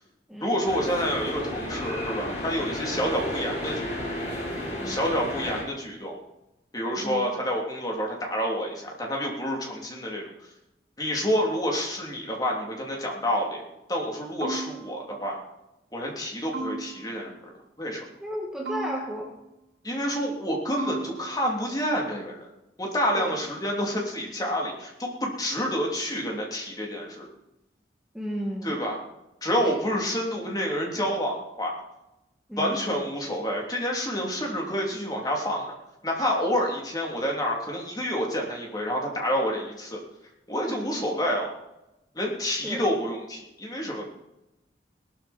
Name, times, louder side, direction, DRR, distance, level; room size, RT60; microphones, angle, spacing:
voice 1, 0.4-4.0 4.8-6.2 6.7-10.3 11.0-13.6 13.9-15.4 15.9-17.3 17.8-18.0 19.8-22.5 22.8-27.3 28.6-29.0 29.4-31.7 32.6-35.7 36.0-40.0 40.5-41.5 42.1-44.1, equal, 20° left, -1 dB, 3.2 m, -28 dB
sound 1, 0.6-5.6, left 1 dB, 40° left, 5.2 m, -32 dB
voice 2, 7.0-7.3 18.2-19.3 23.1-23.4 28.1-28.8 29.6-29.8 32.5-32.8 40.7-41.0 42.6-42.8, equal, 5° right, -3 dB, 2.0 m, -34 dB
sound 2, 14.4-15.2 16.5-17.3 18.6-19.5 20.8-21.6, right 2 dB, 70° right, 6.7 m, -36 dB
19.0 x 13.0 x 4.4 m, 0.91 s
head